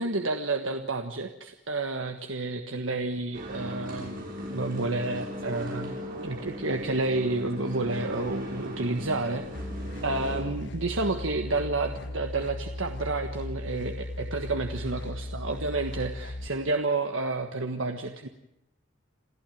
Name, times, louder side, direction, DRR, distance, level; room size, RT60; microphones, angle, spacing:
voice 1, 0.0-9.4 10.0-18.3, right 2 dB, 75° right, 5 dB, 1.5 m, -30 dB
sound 1, 3.3-10.4, equal, 45° right, 7.5 m, -38 dB
sound 2, 9.5-16.5, left 1 dB, 65° left, 1.6 m, -37 dB
28.0 x 15.0 x 9.3 m, 0.86 s
head